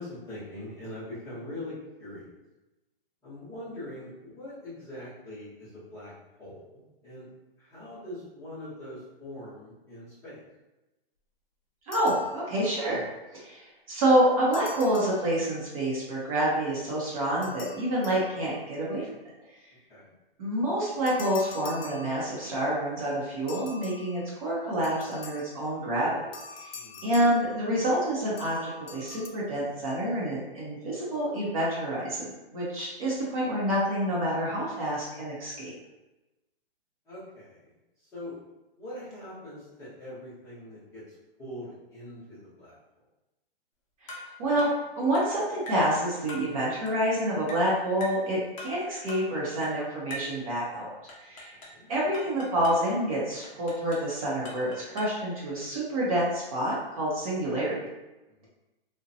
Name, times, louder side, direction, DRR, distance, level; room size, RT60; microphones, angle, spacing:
voice 1, 0.0-2.3 3.2-6.1 6.4-7.3 7.6-10.4 19.9-20.1 26.7-27.0 37.1-37.7 38.1-38.3 38.8-42.8 51.7-51.9 58.3-58.5, left 1 dB, 10° left, -13 dB, 0.8 m, -42 dB
sound 1, 11.9-12.9 14.5-15.8 17.4-18.8 21.1-22.7 23.5-25.7 26.3-28.0 28.4-29.3, left 3 dB, 80° left, 0.6 m, -45 dB
voice 2, 11.9-13.0 13.3-19.1 20.4-26.1 26.6-35.7 44.0-44.7 45.0-50.9 51.2-51.5 51.9-57.8, right 1 dB, 40° right, -6 dB, 0.7 m, -28 dB
sound 2, 44.1-44.3 44.6-44.8 45.1-45.3 45.7-45.9 46.3-46.5 46.9-47.0 47.5-47.7 48.0-48.2 48.6-48.8 49.1-49.3 49.6-49.8 50.1-50.4 51.1-51.8 52.1-52.8 53.4-54.1 54.4-55.2, equal, 35° left, 0.5 m, -42 dB
2.7 x 2.2 x 2.6 m, 1.0 s
hypercardioid pair, 160°, 29 cm